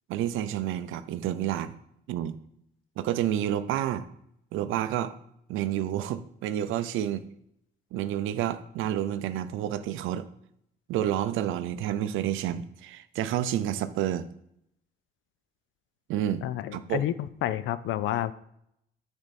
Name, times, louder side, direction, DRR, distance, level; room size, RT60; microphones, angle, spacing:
voice 1, 0.1-1.8 2.1-2.4 3.0-4.1 4.5-5.1 5.5-7.2 7.9-10.3 10.9-14.3 16.1-16.4 16.7-17.1, right 11 dB, 85° right, 13 dB, 0.4 m, -29 dB
voice 2, 16.4-18.3, left 12 dB, 75° left, 15 dB, 0.4 m, -30 dB
6.5 x 3.5 x 4.1 m, 0.73 s
cardioid pair, 90°, 20 cm